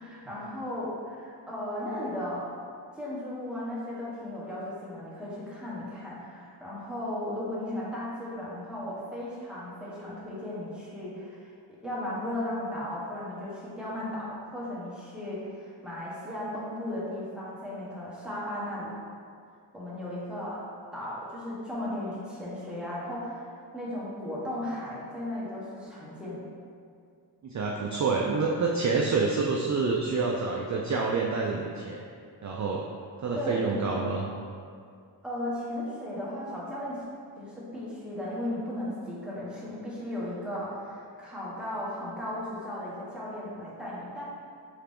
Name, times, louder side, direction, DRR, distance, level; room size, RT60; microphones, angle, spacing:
voice 1, 0.0-2.5 2.9-18.9 19.7-20.6 20.9-23.5 23.7-26.4 33.3-33.9 35.2-37.0 37.4-44.2, left 1 dB, ahead, -8 dB, 1.3 m, -36 dB
voice 2, 27.4-32.0 32.4-32.9 33.2-34.2, right 4 dB, 40° right, -1 dB, 0.4 m, -27 dB
3.6 x 3.3 x 3.6 m, 2.3 s
cardioid pair, 55°, 45 cm